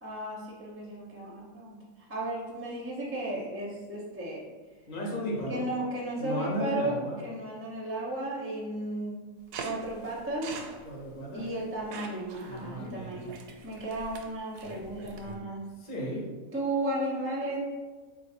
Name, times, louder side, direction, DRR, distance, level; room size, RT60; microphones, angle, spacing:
voice 1, 0.0-1.8 2.1-4.4 5.5-6.9 7.2-9.2 9.6-10.6 11.3-13.4 13.6-15.7 16.5-17.6, right 1 dB, 15° right, -4 dB, 0.4 m, -34 dB
voice 2, 4.9-5.6 6.2-7.2 10.8-11.5 12.5-13.3 15.8-16.3, equal, 40° left, -2 dB, 0.9 m, -34 dB
sound 1, 9.5-15.4, right 4 dB, 85° right, 1.1 m, -44 dB
3.7 x 2.6 x 4.2 m, 1.3 s
omnidirectional pair, 1.6 m